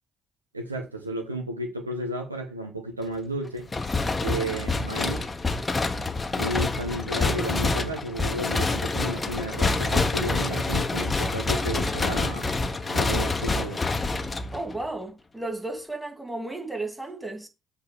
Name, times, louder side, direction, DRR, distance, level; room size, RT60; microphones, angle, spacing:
voice 1, 0.5-3.7 4.2-5.3 6.4-12.5 12.9-13.8, right 1 dB, 90° right, 1.2 m, -33 dB
sound 1, 3.7-14.9, left 3 dB, 25° left, 1.1 m, -27 dB
voice 2, 14.5-17.5, right 2 dB, 10° right, 3.0 m, -34 dB
8.0 x 4.2 x 7.0 m
figure-of-eight pair, 45°, 0 cm